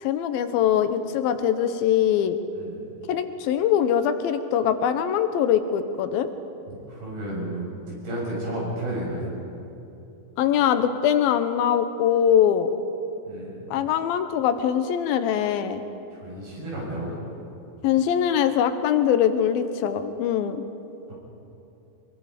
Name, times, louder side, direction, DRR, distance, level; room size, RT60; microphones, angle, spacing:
voice 1, 0.0-2.4 3.1-6.3 10.4-12.7 13.7-15.8 17.8-20.6, left 9 dB, 80° left, 10 dB, 2.7 m, -22 dB
voice 2, 6.7-9.4 13.2-13.5 16.1-17.2 21.1-21.2, right 1 dB, 85° right, -4 dB, 8.7 m, -32 dB
24.5 x 22.0 x 5.2 m, 2.9 s
omnidirectional pair, 4.3 m